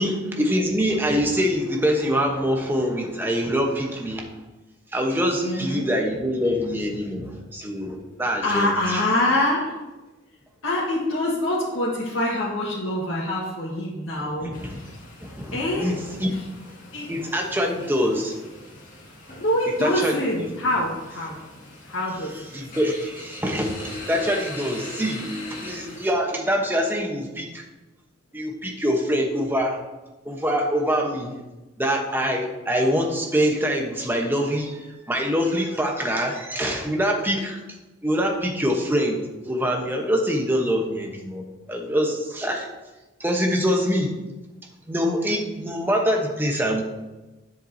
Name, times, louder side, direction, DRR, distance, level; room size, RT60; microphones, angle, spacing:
voice 1, 0.0-4.3 4.9-9.0 14.4-14.8 15.2-16.3 17.1-18.4 19.8-20.5 22.5-27.6 28.3-29.8 30.2-31.3 31.8-37.6 38.0-39.2 39.4-42.7 43.2-44.2 44.9-46.8, equal, 10° right, 1 dB, 1.0 m, -24 dB
voice 2, 5.4-5.9 8.4-9.7 10.6-14.5 15.5-15.9 16.3-16.4 16.9-17.1 19.3-21.4 21.8-22.5, left 1 dB, 75° left, -7 dB, 1.6 m, -25 dB
sound 1, 14.5-26.1, left 1 dB, 40° left, 2.1 m, -41 dB
9.9 x 7.4 x 2.8 m, 1.1 s
head